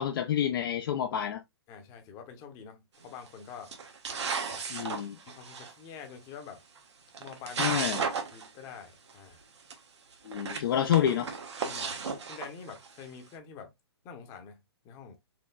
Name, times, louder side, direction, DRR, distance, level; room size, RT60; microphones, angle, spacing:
voice 1, 0.0-1.4 4.7-5.1 7.6-8.0 10.3-11.3, left 10 dB, 55° left, 0.5 m, -28 dB
voice 2, 1.7-3.7 4.5-4.6 5.2-6.6 7.2-7.8 8.3-9.4 11.6-12.0 12.3-13.7 14.0-14.6 14.8-15.2, left 6 dB, 25° left, 0.8 m, -46 dB
sound 1, 3.0-3.3 3.7-5.7 6.8-6.9 7.1-8.5 8.7-8.8 9.1-9.2 9.7-9.8 10.2-13.0, right 5 dB, 85° right, 1.2 m, -34 dB
4.6 x 3.0 x 2.2 m
hypercardioid pair, 150°, 14 cm